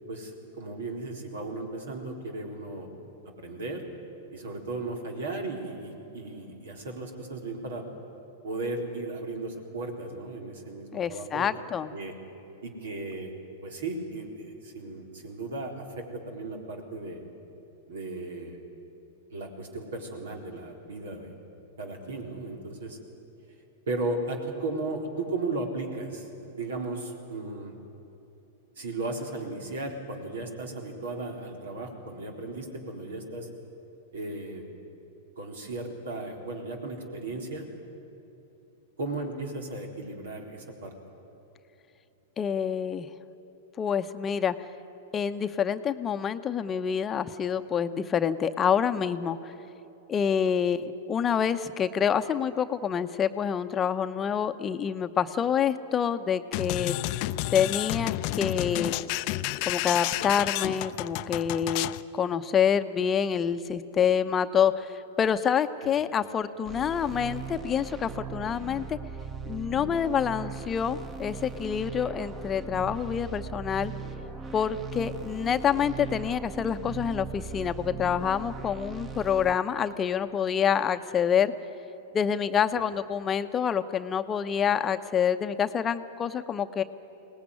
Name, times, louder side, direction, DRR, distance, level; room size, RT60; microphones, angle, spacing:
voice 1, 0.1-2.9 3.3-3.9 4.3-7.9 8.4-11.5 11.9-12.1 12.6-13.3 13.6-17.2 17.9-18.6 19.3-21.3 21.8-23.0 23.9-27.8 28.8-33.5 34.1-34.6 35.4-37.7 39.0-41.0, right 2 dB, 75° right, 3 dB, 3.8 m, -35 dB
voice 2, 10.9-11.9 42.4-43.1 43.8-44.6 45.1-49.5 50.1-57.0 57.5-59.1 59.7-69.0 69.5-73.9 74.5-81.5 82.1-86.8, left 8 dB, 25° left, 9 dB, 0.8 m, -27 dB
sound 1, 56.5-62.0, left 18 dB, 50° left, 0.5 m, -31 dB
sound 2, 66.6-79.5, right 5 dB, 25° right, 1.6 m, -39 dB
23.0 x 18.5 x 9.8 m, 3.0 s
hypercardioid pair, 110°, 0 cm